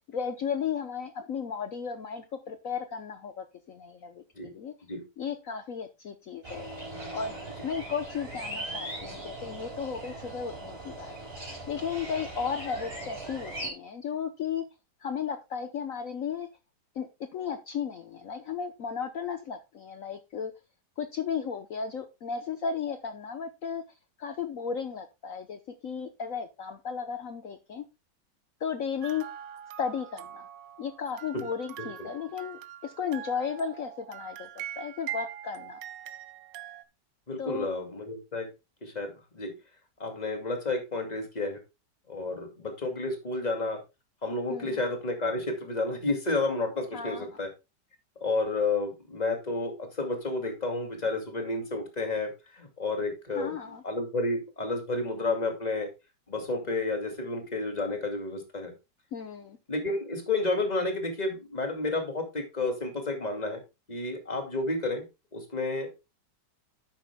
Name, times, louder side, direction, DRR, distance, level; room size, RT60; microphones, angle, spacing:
voice 1, 0.1-4.7 5.2-6.7 7.1-7.3 7.6-11.1 11.7-14.6 15.0-16.5 16.9-20.5 21.0-23.8 24.2-27.8 28.6-29.2 29.8-30.5 30.8-35.8 37.4-37.7 44.5-44.8 46.9-47.3 53.3-53.8 59.1-59.6, left 6 dB, 55° left, 8 dB, 1.2 m, -34 dB
sound 1, 6.4-13.7, right 1 dB, 30° right, 5.0 m, -39 dB
sound 2, 29.0-36.8, right 11 dB, 85° right, 1.4 m, -42 dB
voice 2, 31.8-32.1 37.3-38.5 38.8-39.6 40.0-41.6 42.1-43.8 44.2-47.5 48.2-53.6 53.8-55.9 56.3-58.7 59.7-63.6 63.9-65.1 65.3-65.9, left 2 dB, 25° left, 5 dB, 2.4 m, -31 dB
11.0 x 8.7 x 2.2 m, 0.26 s
omnidirectional pair, 1.9 m